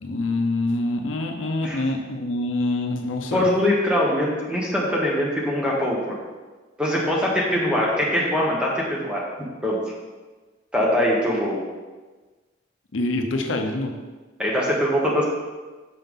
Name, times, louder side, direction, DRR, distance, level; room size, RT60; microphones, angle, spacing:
voice 1, 0.0-3.5 12.9-14.0, left 2 dB, 85° left, 4 dB, 0.7 m, -25 dB
voice 2, 3.3-6.2 6.8-9.2 9.6-9.8 10.7-11.6 14.4-15.3, left 1 dB, 5° right, -4 dB, 1.2 m, -22 dB
6.1 x 5.7 x 3.6 m, 1.3 s
head